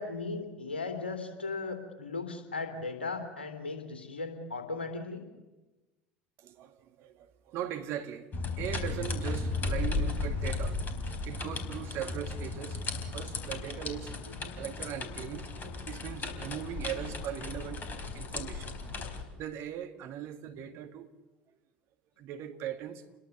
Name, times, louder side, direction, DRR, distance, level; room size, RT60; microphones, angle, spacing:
voice 1, 0.0-5.2 14.3-14.4 20.5-20.6, left 3 dB, 75° left, 3.4 m, -37 dB
voice 2, 6.4-8.3 8.6-12.8 13.1-14.2 14.5-15.5 15.9-17.8 18.1-18.7 19.4-21.1 22.2-23.0, right 10 dB, 50° right, 2.0 m, -39 dB
scary drainpipe, 8.3-19.2, left 3 dB, 30° left, 4.0 m, -35 dB
29.5 x 21.5 x 7.2 m
figure-of-eight pair, 70°, 6 cm